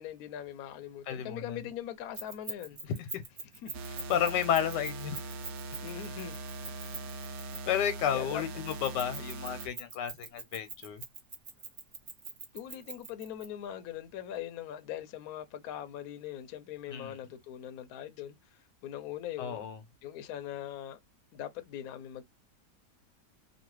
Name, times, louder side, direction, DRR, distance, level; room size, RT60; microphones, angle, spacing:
voice 1, 0.0-2.8 3.5-3.8 5.8-6.4 8.1-8.4 12.5-18.4 18.8-19.7 20.0-21.0 21.3-22.2, left 10 dB, 70° left, 1.0 m, -41 dB
voice 2, 1.1-1.6 3.0-3.2 3.9-5.2 7.7-11.0 16.9-17.2 19.4-19.8, left 9 dB, 90° left, 1.4 m, -32 dB
Keys jangling, 2.1-7.9 8.7-13.5, right 4 dB, 50° right, 0.7 m, -43 dB
sound 1, 3.7-9.7, right 3 dB, 70° right, 1.0 m, -41 dB
3.0 x 2.4 x 3.0 m
omnidirectional pair, 1.8 m